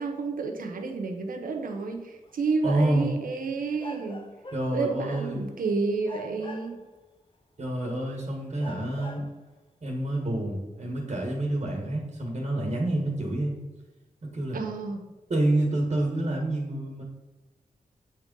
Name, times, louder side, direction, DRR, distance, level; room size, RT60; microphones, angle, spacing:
voice 1, 0.0-4.3 4.7-6.8 11.8-11.9 14.5-15.1, right 4 dB, 85° right, 3 dB, 1.0 m, -30 dB
sound 1, 2.3-2.4 3.8-4.8 5.1-5.7 6.0-7.0 7.8-7.9 8.6-9.4, left 2 dB, 35° left, 0.8 m, -43 dB
voice 2, 2.6-3.1 4.5-5.5 7.6-9.2 9.8-13.6 14.3-14.6 15.3-17.0, right 1 dB, 50° right, -1 dB, 1.5 m, -28 dB
7.9 x 3.7 x 5.3 m, 1.1 s
cardioid pair, 65°, 14 cm